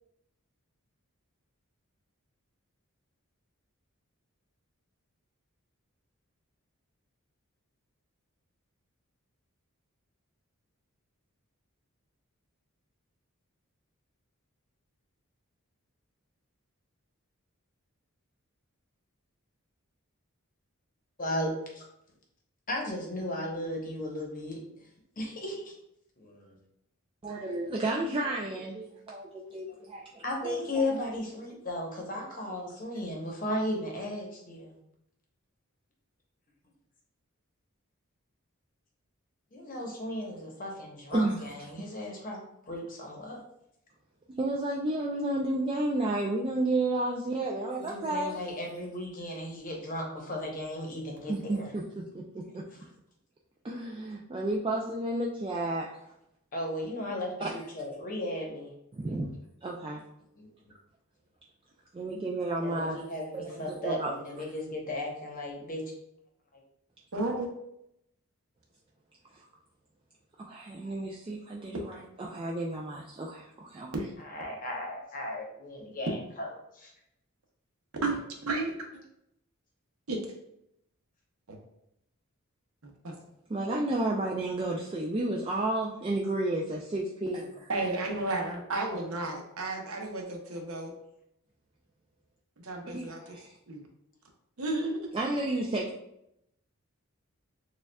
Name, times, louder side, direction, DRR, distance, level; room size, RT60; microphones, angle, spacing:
voice 1, 21.2-21.8 22.7-24.6 25.2-25.6 26.2-26.4 30.2-34.7 39.5-42.4 42.7-43.4 47.7-51.7 56.5-58.7 59.1-59.2 60.4-60.5 62.5-65.8 74.3-76.5 76.8-76.9, left 1 dB, 40° left, 0 dB, 0.9 m, -35 dB
voice 2, 27.2-31.1 41.1-41.5 44.4-48.4 51.3-52.6 53.6-56.0 57.4-57.6 59.0-59.3 59.6-60.0 61.9-63.0 63.3-64.1 70.4-73.9 83.5-87.7 92.9-93.6 95.1-95.9, right 2 dB, 25° right, -2 dB, 0.3 m, -32 dB
voice 3, 67.1-67.5 78.0-78.8 80.1-80.2 81.5-81.6 82.8-83.2 87.7-90.9 92.6-93.2 93.7-93.8 94.6-95.1, right 2 dB, 75° right, 2 dB, 0.8 m, -32 dB
6.6 x 2.3 x 2.2 m, 0.79 s
head